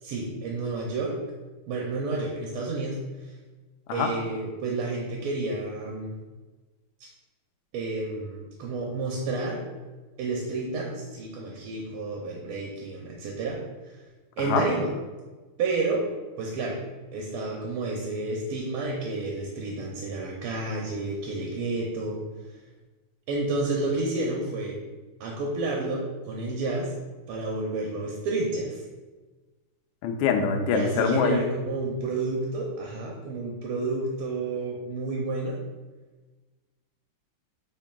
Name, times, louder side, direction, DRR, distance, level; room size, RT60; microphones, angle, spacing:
voice 1, 0.0-1.2 1.7-3.3 3.9-6.2 7.0-7.1 7.7-9.7 10.2-13.6 13.9-14.0 14.4-14.9 15.6-16.1 16.4-16.8 17.1-22.2 22.5-22.6 23.3-24.8 25.2-26.9 27.3-28.8 30.7-35.6, right 3 dB, 85° right, -1 dB, 1.6 m, -30 dB
voice 2, 30.0-31.4, left 6 dB, 75° left, 4 dB, 1.3 m, -24 dB
6.5 x 3.6 x 2.2 m, 1.3 s
omnidirectional pair, 2.4 m